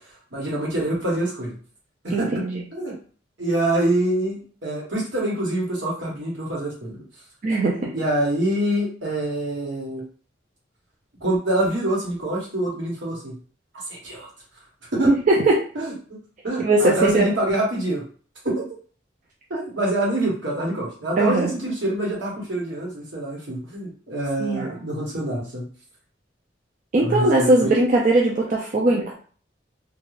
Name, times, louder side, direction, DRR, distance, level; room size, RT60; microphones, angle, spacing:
voice 1, 0.3-1.6 2.0-2.4 2.7-2.9 3.4-7.0 7.9-10.0 11.2-13.3 13.9-14.3 14.9-15.1 15.7-15.9 16.4-18.0 18.4-18.6 19.5-25.6 27.0-27.7, right 1 dB, 70° right, -3 dB, 1.1 m, -25 dB
voice 2, 2.1-2.6 7.4-7.9 15.1-15.5 16.6-17.3 21.2-21.5 24.4-24.7 26.9-29.1, right 2 dB, 40° right, -1 dB, 0.4 m, -19 dB
2.4 x 2.2 x 3.1 m, 0.43 s
head